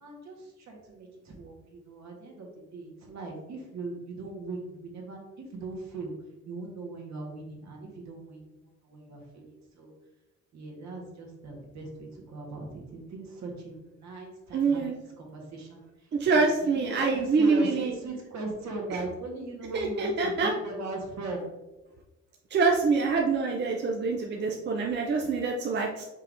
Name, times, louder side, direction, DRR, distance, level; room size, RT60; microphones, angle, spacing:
voice 1, 0.0-6.1 6.4-8.4 8.8-9.5 9.7-9.9 10.5-14.8 15.2-15.8 16.6-21.4, right 2 dB, 65° right, -1 dB, 1.5 m, -39 dB
voice 2, 14.5-14.9 16.1-17.9 18.9-19.0 19.7-20.5 22.5-26.0, right 4 dB, 35° right, 1 dB, 0.5 m, -25 dB
5.3 x 3.4 x 2.6 m, 1.1 s
cardioid pair, 90°, 30 cm